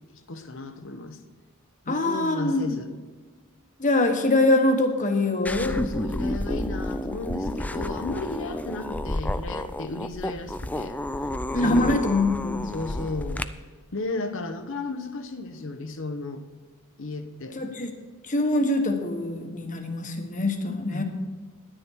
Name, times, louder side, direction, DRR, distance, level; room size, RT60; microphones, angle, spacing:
voice 1, 0.3-1.2 1.8-2.9 5.6-11.0 11.6-12.0 12.6-13.5 13.9-16.4 17.0-17.7 20.9-21.0, left 2 dB, 65° left, 8 dB, 1.0 m, -34 dB
voice 2, 1.9-2.6 3.8-5.7 11.5-12.6 17.5-17.9 18.3-21.0, left 2 dB, 40° left, 5 dB, 1.3 m, -23 dB
sound 1, 5.4-13.4, left 1 dB, 5° left, 0.3 m, -30 dB
10.5 x 10.0 x 4.6 m, 1.4 s
head